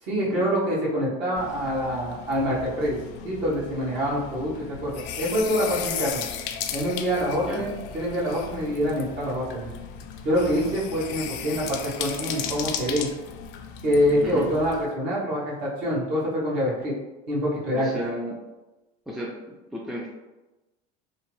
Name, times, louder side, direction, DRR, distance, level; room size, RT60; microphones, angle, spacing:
voice 1, 0.0-3.0 3.2-6.2 6.7-9.7 10.2-13.1 13.8-16.9 17.3-17.9, equal, 60° right, -6 dB, 1.4 m, -25 dB
sound 1, 1.4-14.9, left 8 dB, 60° left, 0.4 m, -36 dB
voice 2, 7.3-7.7 14.2-14.5 17.7-18.4 19.1-20.1, equal, ahead, -3 dB, 0.4 m, -34 dB
3.0 x 2.0 x 3.1 m, 1.1 s
supercardioid pair, 95°, 20 cm